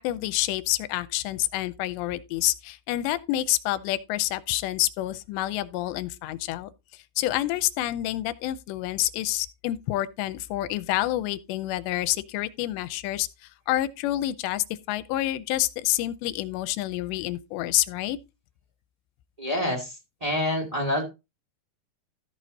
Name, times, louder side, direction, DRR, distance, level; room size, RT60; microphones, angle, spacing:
voice 1, 0.0-6.7 7.2-13.3 13.7-18.2, left 15 dB, 85° left, 2.8 m, -28 dB
voice 2, 19.4-21.0, left 1 dB, 30° right, 0.6 m, -27 dB
14.0 x 5.0 x 4.0 m
omnidirectional pair, 5.0 m